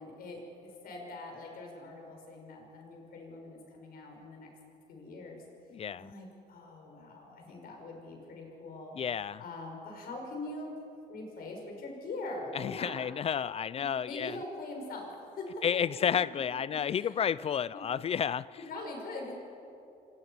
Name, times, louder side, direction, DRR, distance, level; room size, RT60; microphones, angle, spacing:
voice 1, 0.0-4.5 4.9-5.4 6.0-8.9 9.4-10.7 11.1-13.1 14.1-15.6 16.9-17.2 17.7-17.8 18.7-19.3, left 2 dB, 60° left, 1 dB, 5.9 m, -43 dB
voice 2, 5.7-6.1 8.9-9.4 12.5-14.4 15.6-18.5, left 8 dB, 35° left, 19 dB, 0.4 m, -31 dB
25.5 x 19.0 x 5.7 m, 2.7 s
cardioid pair, 110°, 17 cm